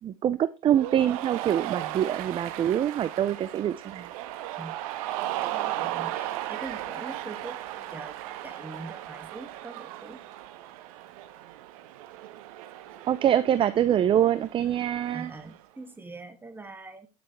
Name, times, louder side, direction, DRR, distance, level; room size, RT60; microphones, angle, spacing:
voice 1, 0.0-4.1 13.1-15.3, right 10 dB, 25° right, 15 dB, 0.6 m, -25 dB
Cheering, 0.7-15.6, right 14 dB, 65° right, 1.4 m, -36 dB
voice 2, 5.1-8.2 8.4-10.2 15.1-17.1, right 3 dB, 10° right, 7 dB, 2.1 m, -43 dB
20.0 x 6.8 x 3.3 m, 0.27 s
hypercardioid pair, 105°, 19 cm